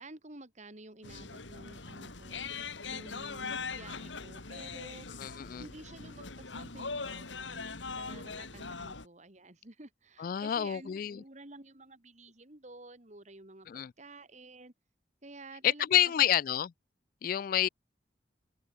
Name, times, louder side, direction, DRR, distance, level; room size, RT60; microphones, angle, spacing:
voice 1, 0.0-5.3 5.6-7.7 8.0-14.7 15.2-16.1, right 2 dB, 40° right, 2.4 m, -51 dB
sound 1, 1.0-9.1, left 4 dB, 90° left, 3.3 m, -41 dB
voice 2, 5.2-5.6 8.8-8.9 10.2-11.2 13.7-13.9 15.6-16.7 17.2-17.7, left 11 dB, 50° left, 0.3 m, -28 dB
open air
head